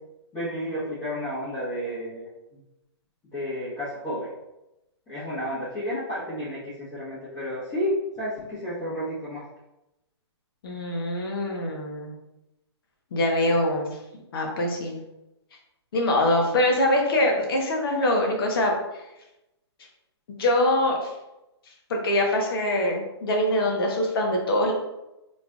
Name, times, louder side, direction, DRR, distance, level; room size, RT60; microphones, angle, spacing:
voice 1, 0.3-2.2 3.3-4.3 5.1-9.4, equal, 20° left, -13 dB, 1.4 m, -31 dB
voice 2, 10.6-12.1 13.1-14.0 14.3-15.0 15.9-19.0 20.3-21.1 21.9-24.7, left 1 dB, 55° left, 1 dB, 1.1 m, -24 dB
4.1 x 3.3 x 2.4 m, 0.93 s
hypercardioid pair, 145°, 15 cm